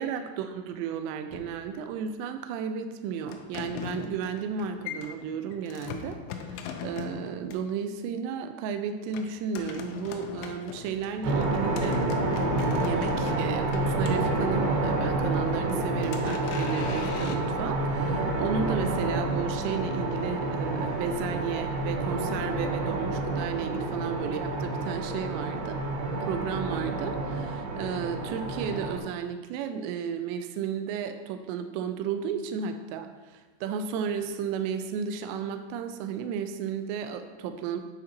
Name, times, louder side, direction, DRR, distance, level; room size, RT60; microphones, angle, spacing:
voice 1, 0.0-12.0 12.8-25.8 26.2-37.8, right 7 dB, 90° right, 7 dB, 2.5 m, -33 dB
sound 1, 1.3-2.1 3.3-7.7 9.1-14.9 15.4-17.4, left 7 dB, 90° left, 3.1 m, -40 dB
sound 2, 11.2-29.0, right 2 dB, 75° right, 2.8 m, -29 dB
9.2 x 3.9 x 4.4 m, 1.3 s
omnidirectional pair, 5.6 m